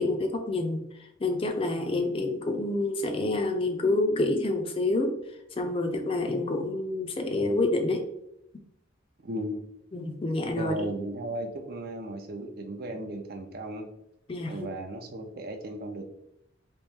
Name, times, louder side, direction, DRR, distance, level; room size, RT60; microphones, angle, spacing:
voice 1, 0.0-8.1 9.9-10.7 14.3-14.7, left 2 dB, 30° left, 5 dB, 0.4 m, -28 dB
voice 2, 9.2-9.7 10.5-13.9 14.5-16.0, right 1 dB, 55° right, 5 dB, 0.5 m, -35 dB
3.0 x 3.0 x 3.5 m, 0.81 s
head